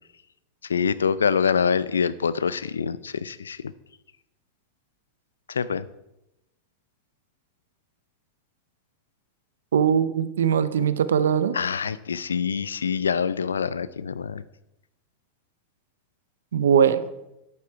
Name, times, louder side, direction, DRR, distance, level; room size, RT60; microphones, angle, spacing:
voice 1, 0.7-3.6 5.5-5.9 11.5-14.4, left 6 dB, 90° left, 18 dB, 0.5 m, -25 dB
voice 2, 9.7-11.6 16.5-17.0, right 8 dB, 80° right, 14 dB, 0.7 m, -20 dB
11.0 x 8.4 x 4.6 m, 0.88 s
hypercardioid pair, 95°, 0 cm